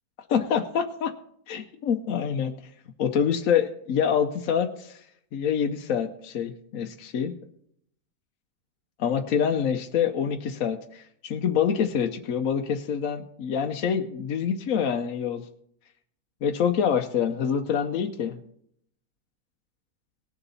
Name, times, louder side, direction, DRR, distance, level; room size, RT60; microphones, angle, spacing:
voice 1, 0.3-1.1 1.5-2.5 3.0-5.0 5.3-7.3 9.0-15.4 16.4-18.4, left 7 dB, 60° left, 4 dB, 1.1 m, -26 dB
18.5 x 6.9 x 4.1 m, 0.68 s
omnidirectional pair, 1.7 m